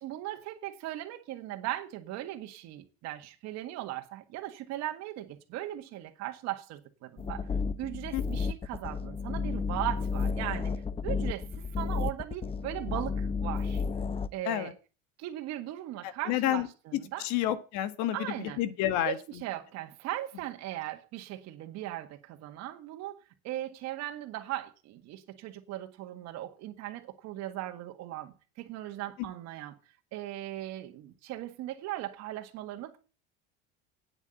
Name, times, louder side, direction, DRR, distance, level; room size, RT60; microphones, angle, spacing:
voice 1, 0.0-7.5 7.8-13.8 14.3-14.7 15.2-17.3 18.1-18.6 19.1-19.2 19.4-23.2 23.4-29.8 30.1-33.0, right 14 dB, 60° right, 1.8 m, -38 dB
sound 1, 7.2-14.3, left 5 dB, 20° left, 0.7 m, -32 dB
voice 2, 16.0-16.7 17.2-19.2, left 13 dB, 65° left, 1.6 m, -30 dB
8.9 x 8.3 x 7.8 m
supercardioid pair, 105°, 31 cm